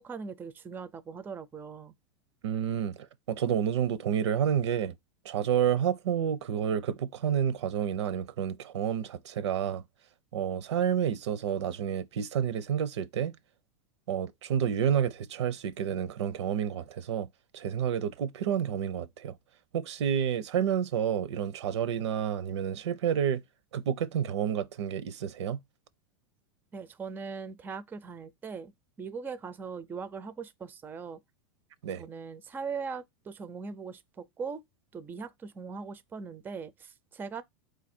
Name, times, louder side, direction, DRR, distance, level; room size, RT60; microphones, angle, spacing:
voice 1, 0.0-1.9 26.7-31.2 32.0-34.6 34.9-37.4, right 5 dB, 15° right, 0.4 m, -40 dB
voice 2, 2.4-5.0 5.2-9.8 10.3-13.4 14.1-17.3 17.5-19.4 19.7-23.4 23.7-25.6 31.8-32.0, right 8 dB, 90° right, 0.5 m, -29 dB
4.6 x 2.5 x 4.2 m
supercardioid pair, 125°, 14 cm